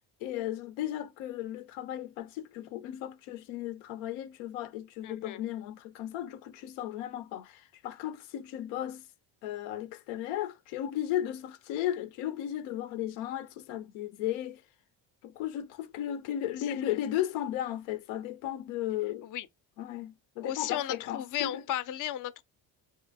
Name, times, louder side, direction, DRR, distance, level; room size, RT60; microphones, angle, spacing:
voice 1, 0.2-9.0 9.4-14.6 15.2-19.3 19.8-21.6, left 12 dB, 90° left, 0.6 m, -35 dB
voice 2, 5.0-5.4 16.9-17.0 19.2-19.5 20.4-22.4, left 12 dB, 45° left, 0.5 m, -35 dB
3.0 x 2.6 x 3.3 m
supercardioid pair, 80°, 47 cm